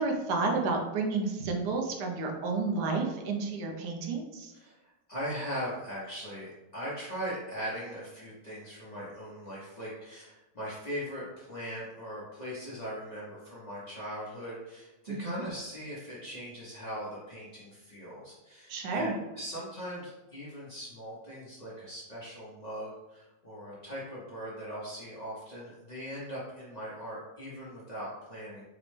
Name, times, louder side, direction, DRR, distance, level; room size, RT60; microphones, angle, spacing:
voice 1, 0.0-4.5 15.1-15.4 18.7-19.1, right 3 dB, 70° right, 2 dB, 1.2 m, -31 dB
voice 2, 4.5-28.6, equal, 75° left, -8 dB, 0.4 m, -40 dB
5.0 x 2.1 x 3.1 m, 1.1 s
omnidirectional pair, 1.9 m